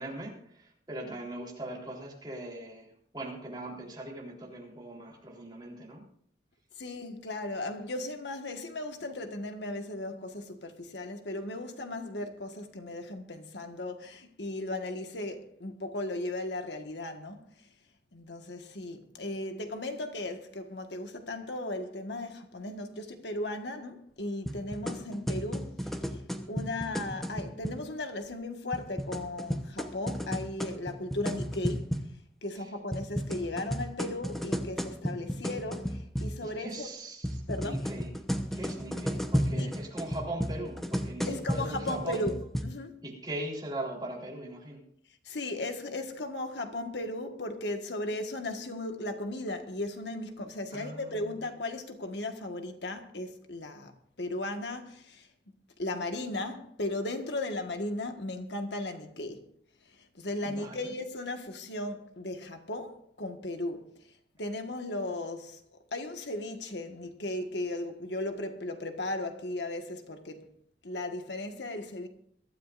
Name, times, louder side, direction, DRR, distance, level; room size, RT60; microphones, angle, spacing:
voice 1, 0.0-2.9 3.1-6.1 36.4-38.1 38.5-42.3 43.0-44.8 50.7-51.3 60.4-60.8, right 1 dB, 25° right, 3.7 m, -40 dB
voice 2, 6.8-17.4 18.1-26.2 26.5-31.9 32.4-36.9 37.5-37.9 39.5-39.7 41.2-42.4 42.6-43.0 45.2-53.9 54.2-55.3 55.8-59.5 59.9-64.1 64.4-65.6 65.9-70.5 70.8-72.1, left 2 dB, 85° left, 1.6 m, -36 dB
sound 1, 24.5-27.8 28.7-32.1 32.9-36.4 37.2-42.6, equal, ahead, 0.9 m, -33 dB
22.5 x 13.0 x 2.6 m
head